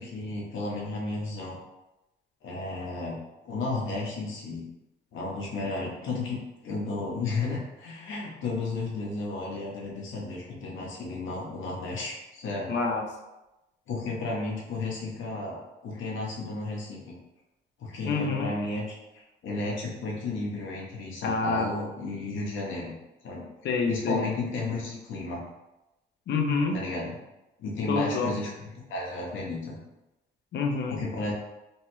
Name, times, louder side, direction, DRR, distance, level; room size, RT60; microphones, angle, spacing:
voice 1, 0.0-1.6 2.4-3.2 3.4-4.6 5.1-12.7 13.9-15.6 15.8-17.1 17.8-22.9 23.2-23.4 23.9-25.4 26.7-27.1 27.6-29.8 30.9-31.3, left 3 dB, 75° left, -4 dB, 0.9 m, -33 dB
voice 2, 12.7-13.0 18.1-18.5 21.2-21.7 23.6-24.3 26.3-26.8 27.9-28.3 30.5-31.0, left 4 dB, 60° left, 3 dB, 0.5 m, -27 dB
3.2 x 2.1 x 3.0 m, 0.98 s
cardioid pair, 90°, 20 cm